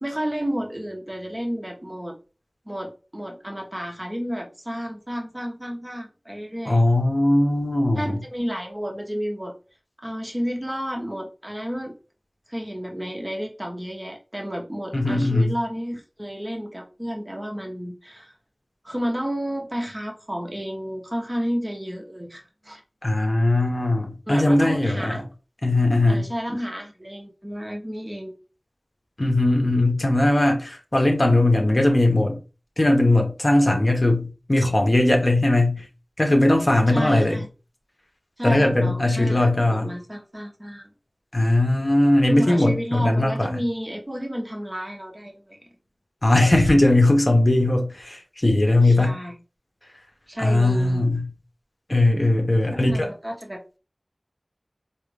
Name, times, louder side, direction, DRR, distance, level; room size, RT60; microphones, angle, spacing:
voice 1, 0.0-2.1 2.7-6.8 8.0-9.5 10.0-11.9 12.5-18.3 18.8-22.8 24.3-25.2 26.1-28.3 36.9-37.5 38.4-40.9 42.3-45.6 48.8-49.4 50.3-51.1 52.7-53.8, equal, 20° right, 0.9 m, -31 dB
voice 2, 6.6-8.2 14.9-15.5 23.0-25.2 25.6-26.3 29.2-32.4 32.8-35.8 36.2-37.4 38.4-39.9 41.3-43.5 46.2-49.2 50.4-51.3 51.9-53.1, left 1 dB, 45° left, 1.1 m, -19 dB
4.6 x 2.4 x 3.4 m
wide cardioid pair, 50°, 0 cm